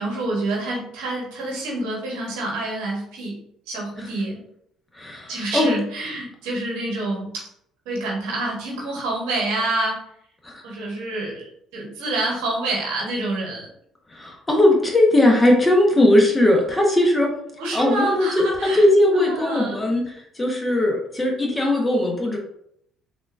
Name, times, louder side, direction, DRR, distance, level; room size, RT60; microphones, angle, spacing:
voice 1, 0.0-3.4 3.7-4.4 5.3-7.5 7.8-10.0 10.6-13.7 17.6-18.8 19.1-19.8, right 2 dB, 85° right, -2 dB, 1.1 m, -27 dB
voice 2, 4.9-5.7 10.4-10.6 14.1-17.3 17.7-22.4, left 1 dB, 20° left, 0 dB, 0.9 m, -19 dB
3.5 x 2.5 x 2.5 m, 0.72 s
supercardioid pair, 70°, 0 cm